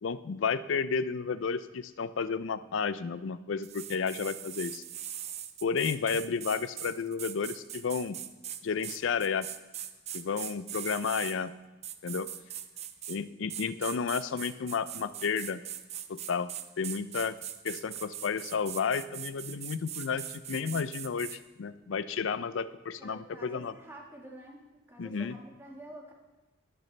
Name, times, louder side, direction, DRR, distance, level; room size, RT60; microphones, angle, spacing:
voice 1, 0.0-4.8 5.6-8.2 8.6-9.5 10.1-11.5 12.0-12.3 13.1-15.6 16.1-17.3 17.6-23.7 25.0-25.4, left 5 dB, 80° left, 14 dB, 0.4 m, -32 dB
sound 1, 3.6-11.4 11.8-13.2 13.5-21.4, right 10 dB, 35° right, 0.5 m, -41 dB
voice 2, 23.0-24.6 24.9-26.1, right 1 dB, 10° right, -1 dB, 1.6 m, -48 dB
20.0 x 6.8 x 3.3 m, 1.1 s
head